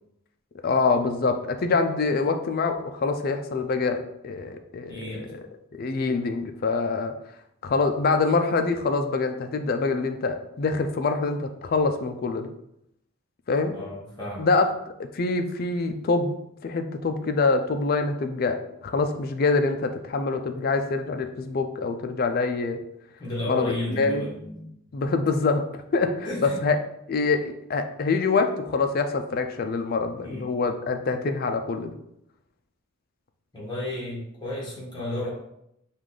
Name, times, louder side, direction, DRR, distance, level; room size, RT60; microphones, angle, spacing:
voice 1, 0.6-7.1 7.6-12.5 13.5-13.7 14.4-16.4 16.6-22.8 23.5-24.2 24.9-26.8 27.1-32.0, left 4 dB, 45° left, 7 dB, 0.4 m, -25 dB
voice 2, 4.9-5.3 13.7-14.5 23.2-24.7 26.2-26.6 30.2-30.4 33.5-35.3, left 1 dB, 20° left, -5 dB, 1.3 m, -32 dB
4.9 x 2.4 x 3.7 m, 0.78 s
head